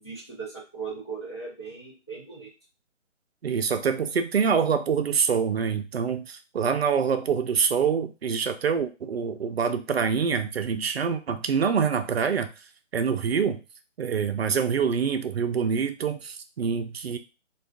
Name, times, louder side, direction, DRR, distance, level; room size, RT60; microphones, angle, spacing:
voice 1, 0.0-2.5, right 5 dB, 25° left, -5 dB, 0.5 m, -38 dB
voice 2, 3.4-12.5 12.9-13.6 14.0-17.2, right 6 dB, 55° right, 8 dB, 0.5 m, -25 dB
2.4 x 2.3 x 3.3 m, 0.31 s
hypercardioid pair, 165°, 38 cm